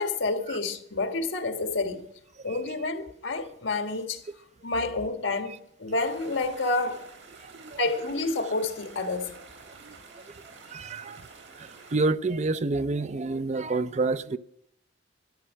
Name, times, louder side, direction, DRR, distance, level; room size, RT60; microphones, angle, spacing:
voice 1, 0.0-2.1 2.4-4.2 4.6-7.1 7.8-9.4, left 3 dB, 85° left, 1.5 m, -29 dB
sound 1, 5.9-12.0, right 4 dB, 85° right, 4.5 m, -49 dB
voice 2, 7.4-7.8 9.7-11.3 11.6-14.4, right 3 dB, 40° right, 0.5 m, -30 dB
13.0 x 10.0 x 6.3 m
head